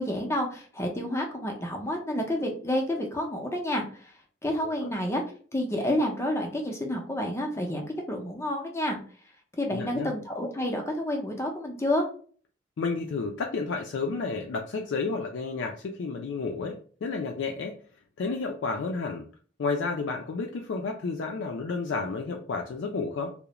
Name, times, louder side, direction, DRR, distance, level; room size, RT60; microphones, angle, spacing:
voice 1, 0.0-4.1 4.4-5.2 5.5-9.0 9.6-12.0, left 1 dB, 15° left, 1 dB, 0.5 m, -29 dB
voice 2, 9.7-10.1 12.8-17.8 18.2-19.2 19.6-23.3, left 4 dB, 80° left, 2 dB, 0.4 m, -31 dB
2.4 x 2.0 x 2.9 m, 0.44 s
head